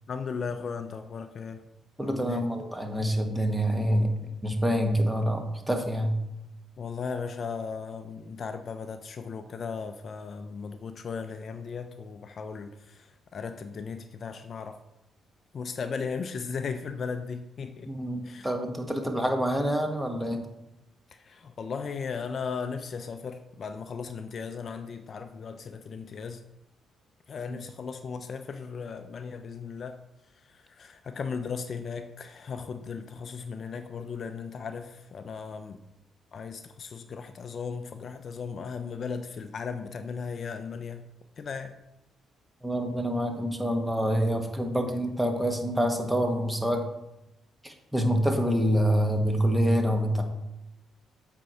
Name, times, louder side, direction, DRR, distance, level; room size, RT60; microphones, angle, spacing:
voice 1, 0.1-1.6 2.0-2.4 6.8-14.8 15.5-17.9 18.2-18.5 21.1-26.4 27.3-30.0 30.5-35.8 36.3-41.1 41.4-41.7 44.8-45.0, left 5 dB, 50° left, 8 dB, 0.5 m, -36 dB
voice 2, 2.0-4.1 4.4-6.1 17.9-20.4 27.5-27.6 42.6-46.8 47.6-50.2, equal, 5° right, 4 dB, 1.3 m, -26 dB
7.6 x 4.5 x 5.7 m, 0.90 s
cardioid pair, 90°, 0 cm